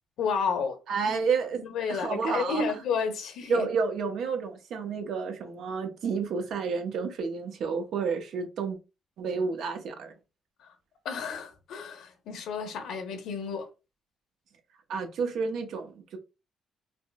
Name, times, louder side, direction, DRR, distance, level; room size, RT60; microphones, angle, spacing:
voice 1, 0.2-0.8 1.6-3.7 10.6-10.7 11.0-13.7, left 5 dB, 80° left, 0.9 m, -31 dB
voice 2, 0.9-1.6 1.9-2.6 3.5-8.8 9.2-10.1 14.9-16.2, right 5 dB, 75° right, 0.7 m, -30 dB
4.3 x 2.0 x 2.2 m
cardioid pair, 90°, 0 cm